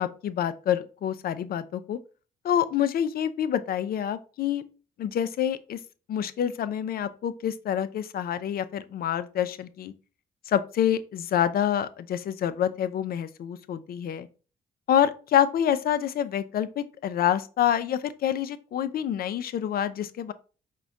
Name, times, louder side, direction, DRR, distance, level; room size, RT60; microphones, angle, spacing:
voice 1, 0.0-2.0 2.4-4.6 5.0-5.8 6.1-9.9 10.5-14.3 14.9-20.3, left 10 dB, 50° left, 0.4 m, -27 dB
4.9 x 2.2 x 3.6 m
hypercardioid pair, 40°, 20 cm